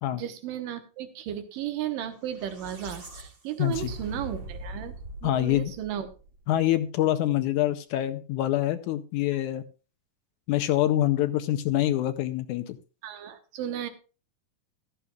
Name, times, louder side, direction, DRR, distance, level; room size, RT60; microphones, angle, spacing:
voice 1, 0.1-4.9 5.2-6.1 13.0-13.9, right 10 dB, 85° right, 8 dB, 2.8 m, -34 dB
sound 1, 2.2-6.6, right 1 dB, 35° right, 2.9 m, -41 dB
voice 2, 3.6-3.9 5.2-5.7 6.5-9.6 10.5-12.8, left 13 dB, 75° left, 10 dB, 2.0 m, -25 dB
14.5 x 12.5 x 2.4 m, 0.34 s
omnidirectional pair, 3.8 m